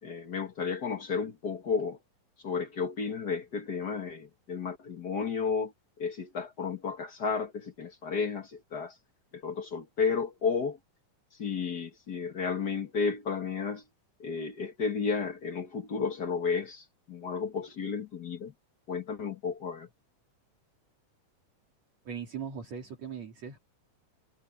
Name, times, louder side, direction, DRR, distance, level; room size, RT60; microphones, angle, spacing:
voice 1, 0.0-2.0 2.4-8.9 9.3-10.8 11.4-13.8 14.2-18.5 18.9-19.9, left 5 dB, 45° left, 1.5 m, -32 dB
voice 2, 22.1-23.6, right 7 dB, 55° right, 3.9 m, -39 dB
omnidirectional pair, 3.7 m